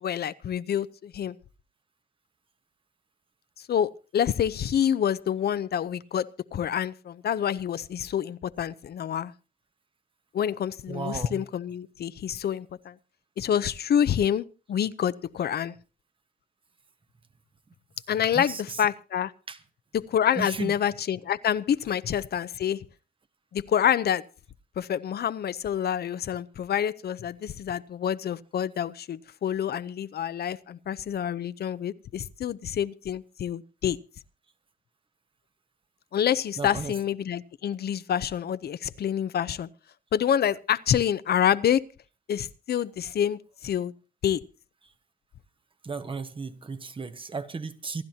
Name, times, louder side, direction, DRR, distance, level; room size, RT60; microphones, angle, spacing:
voice 1, 0.0-1.3 3.7-9.3 10.3-12.9 13.4-15.7 18.1-19.3 19.9-22.8 23.5-24.2 24.8-34.0 36.1-39.7 40.1-41.8 42.3-43.9 44.2-44.4, left 9 dB, 90° left, 0.7 m, -27 dB
voice 2, 10.9-11.4 18.3-18.9 19.5-19.6 20.4-20.7 36.6-36.9 45.8-48.0, right 4 dB, 35° right, 1.0 m, -35 dB
27.5 x 12.0 x 2.8 m
wide cardioid pair, 175°, 16 cm